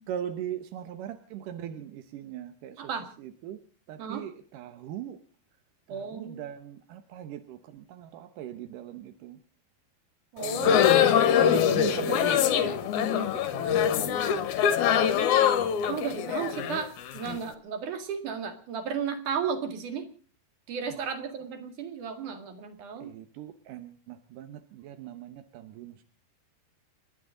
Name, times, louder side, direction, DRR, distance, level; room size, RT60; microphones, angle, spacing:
voice 1, 0.1-2.9 3.2-3.6 3.9-5.2 5.9-9.4 10.4-15.0 16.2-16.7 20.9-21.3 23.0-26.0, right 10 dB, 70° right, 8 dB, 2.2 m, -40 dB
voice 2, 5.9-6.4 10.3-10.8 15.9-20.0 20.7-23.1, right 6 dB, 55° right, 7 dB, 3.2 m, -34 dB
sound 1, 10.4-17.4, left 9 dB, 65° left, 2.0 m, -24 dB
29.5 x 11.0 x 3.8 m, 0.41 s
omnidirectional pair, 4.8 m